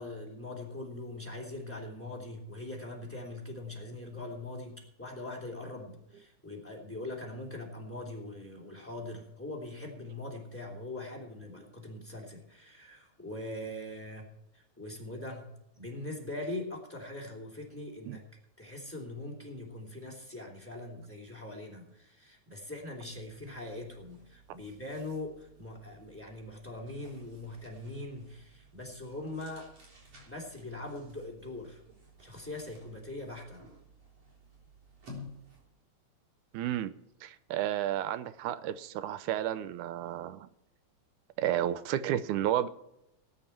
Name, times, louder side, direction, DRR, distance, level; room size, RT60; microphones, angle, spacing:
voice 1, 0.0-14.3 14.5-15.5 15.8-18.2 18.6-29.7 30.2-31.8 32.2-33.7, left 2 dB, 5° left, 2.8 m, -42 dB
sound 1, 22.4-35.8, left 1 dB, 55° right, 4.4 m, -55 dB
voice 2, 36.5-36.9 37.2-40.5 41.4-42.7, right 12 dB, 90° right, 2.1 m, -32 dB
18.5 x 10.0 x 4.4 m
omnidirectional pair, 3.4 m